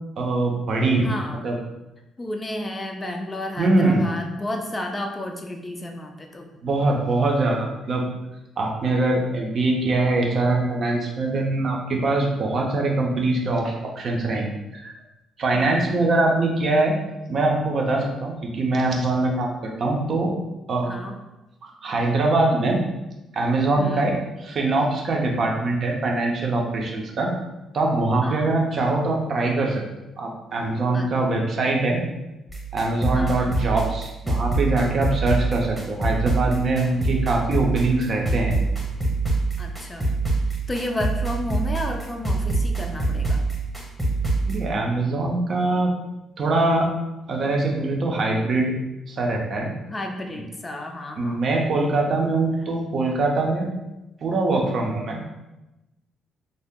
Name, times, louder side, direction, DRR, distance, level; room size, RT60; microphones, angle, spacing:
voice 1, 0.2-1.1 1.4-1.6 3.6-4.0 6.6-8.0 8.6-14.9 15.4-17.0 17.3-20.3 20.7-20.9 21.6-22.8 23.3-24.1 24.4-27.3 27.7-29.8 30.2-32.0 32.7-38.5 44.5-45.9 46.4-46.9 47.3-48.7 49.1-49.7 50.3-50.4 51.2-53.7 54.2-55.2, right 2 dB, 55° right, 0 dB, 0.5 m, -23 dB
voice 2, 1.0-1.4 2.2-6.5 15.5-16.3 20.9-21.1 23.8-24.1 28.2-28.5 30.9-31.1 33.1-33.6 39.6-40.1 40.7-43.4 49.9-51.4, left 1 dB, 25° left, 3 dB, 0.4 m, -32 dB
sound 1, 32.5-44.6, right 3 dB, 10° right, 0.9 m, -25 dB
2.7 x 2.0 x 3.5 m, 0.99 s
cardioid pair, 90°, 0 cm